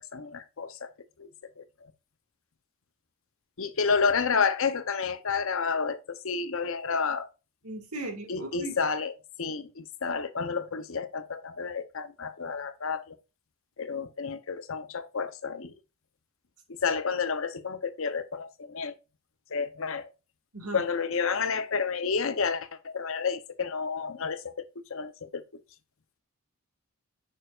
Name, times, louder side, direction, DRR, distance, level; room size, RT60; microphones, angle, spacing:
voice 1, 0.1-0.9 1.2-1.3 1.6-1.9 3.6-7.3 8.3-9.1 9.4-13.2 13.8-15.7 16.7-18.9 19.5-20.1 20.7-24.6 24.9-25.6, left 5 dB, 65° left, 0.8 m, -30 dB
voice 2, 7.6-8.8 20.5-20.8, right 1 dB, 85° right, 2.1 m, -37 dB
6.7 x 6.3 x 2.4 m
head